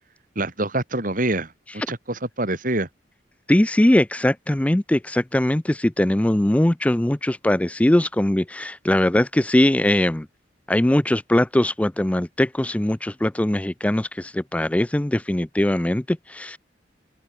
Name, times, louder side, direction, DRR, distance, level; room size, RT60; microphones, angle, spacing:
voice 1, 0.4-1.5 1.9-2.9, right 2 dB, 50° right, 4.2 m, -25 dB
voice 2, 3.5-10.3 10.7-16.6, left 1 dB, 10° left, 0.4 m, -21 dB
open air
head